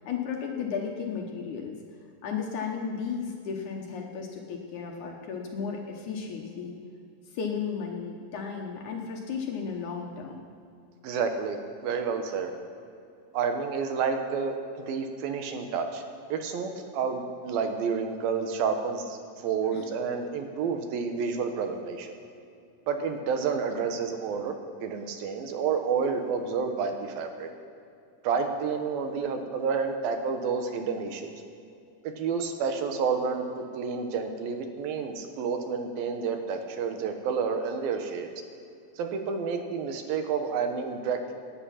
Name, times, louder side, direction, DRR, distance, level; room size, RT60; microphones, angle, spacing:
voice 1, 0.1-1.8 2.2-6.8 7.3-10.4 19.6-19.9, left 6 dB, 65° left, 1 dB, 2.3 m, -34 dB
voice 2, 11.0-12.5 13.3-16.0 16.3-22.1 22.9-24.5 24.8-27.5 28.2-31.3 32.2-38.3 39.0-41.3, right 5 dB, 80° right, 6 dB, 2.9 m, -30 dB
17.5 x 10.0 x 5.8 m, 2.5 s
omnidirectional pair, 4.2 m